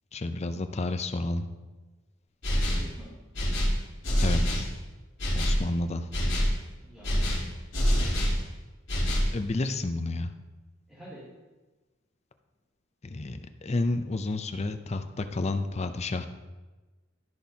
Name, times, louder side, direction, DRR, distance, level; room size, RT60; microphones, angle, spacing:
voice 1, 0.1-1.5 4.2-4.7 5.3-6.1 9.3-10.3 13.0-16.3, left 2 dB, 35° left, 9 dB, 0.5 m, -30 dB
sound 1, 2.4-2.9 3.3-4.7 5.2-5.6 6.1-6.6 7.0-8.4 8.9-9.3, equal, 75° left, 3.1 m, -25 dB
voice 2, 2.7-3.2 6.8-7.4 7.8-8.4 10.9-11.2, right 1 dB, ahead, -14 dB, 2.6 m, -48 dB
14.0 x 6.1 x 2.8 m, 1.2 s
head